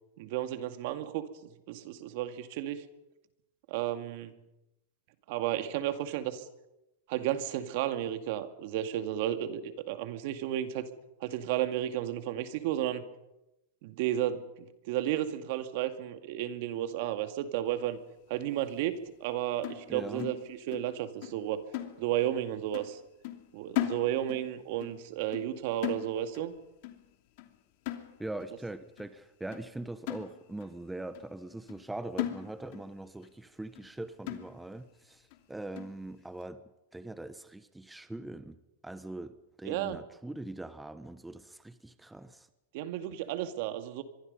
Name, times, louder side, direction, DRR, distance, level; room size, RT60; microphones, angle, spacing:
voice 1, 0.2-1.2 1.7-2.8 3.7-4.3 5.3-6.4 7.1-10.9 11.2-13.0 13.8-18.0 18.3-21.6 22.0-23.0 23.5-26.5 39.6-40.0 42.7-44.0, right 12 dB, 60° right, 9 dB, 2.2 m, -33 dB
sound 1, 19.6-20.9 21.2-21.4 21.7-22.4 22.7-23.0 23.2-24.5 24.8-25.0 25.3-25.6 25.8-26.5 26.8-27.1 27.4-27.6 27.9-28.5 29.0-29.1 29.5-29.7 30.1-30.7 31.1-31.3 31.7-31.9 32.2-32.9 33.2-33.3 33.7-33.9 34.3-34.8 35.3-35.4 35.8-36.0, left 14 dB, 55° left, 2.8 m, -37 dB
voice 2, 19.9-20.3 28.2-36.6 36.9-38.6 38.8-42.5, right 2 dB, 5° right, 12 dB, 1.1 m, -42 dB
25.5 x 23.5 x 5.5 m, 0.92 s
hypercardioid pair, 130°, 0 cm